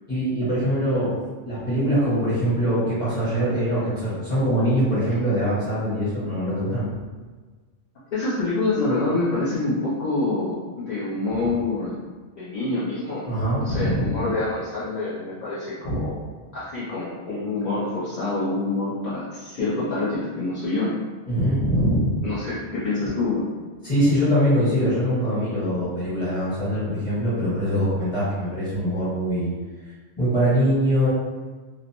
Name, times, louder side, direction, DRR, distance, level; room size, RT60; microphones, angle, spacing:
voice 1, 0.1-1.1 1.4-6.9 13.3-14.2 15.8-16.0 21.3-22.2 23.8-29.5 30.2-31.1, equal, 25° left, -12 dB, 1.3 m, -23 dB
voice 2, 8.1-12.0 12.4-13.3 13.6-16.1 16.5-20.9 22.2-23.5, left 2 dB, 45° left, -10 dB, 0.6 m, -26 dB
2.5 x 2.0 x 2.9 m, 1.4 s
omnidirectional pair, 1.2 m